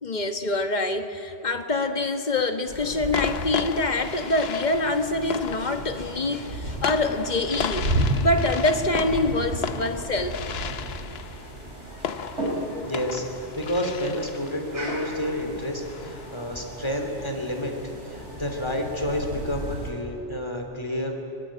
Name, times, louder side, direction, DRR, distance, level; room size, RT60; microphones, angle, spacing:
voice 1, 0.0-10.4, left 2 dB, 40° left, 7 dB, 1.5 m, -25 dB
sound 1, 1.6-2.2 3.1-16.5, left 7 dB, 65° left, 1.0 m, -35 dB
sound 2, 2.7-19.9, right 1 dB, 85° right, 5.5 m, -33 dB
voice 2, 12.8-21.1, left 1 dB, 25° left, 3 dB, 3.1 m, -30 dB
24.5 x 21.5 x 8.8 m, 3.0 s
omnidirectional pair, 1.2 m